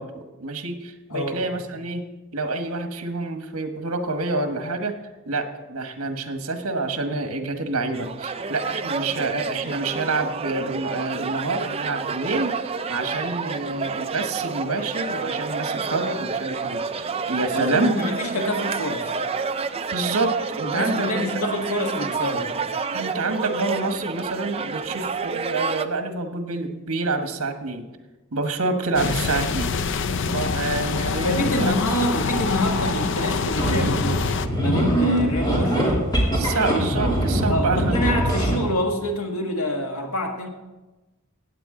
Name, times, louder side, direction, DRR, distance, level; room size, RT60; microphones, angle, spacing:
voice 1, 0.0-18.0 19.9-21.2 22.9-27.9 28.3-29.7 30.3-31.8 36.3-38.0, right 3 dB, 75° right, 6 dB, 1.3 m, -27 dB
voice 2, 1.1-1.5 17.5-19.2 20.6-22.5 31.2-34.2 34.6-36.0 37.5-40.5, left 1 dB, 80° left, 2 dB, 1.7 m, -26 dB
sound 1, 7.9-25.9, right 5 dB, 25° right, 0.4 m, -29 dB
sound 2, 28.9-34.5, left 4 dB, 55° left, 0.5 m, -25 dB
sound 3, 33.6-38.7, right 1 dB, 20° left, 2.9 m, -22 dB
16.0 x 9.2 x 3.8 m, 1.1 s
head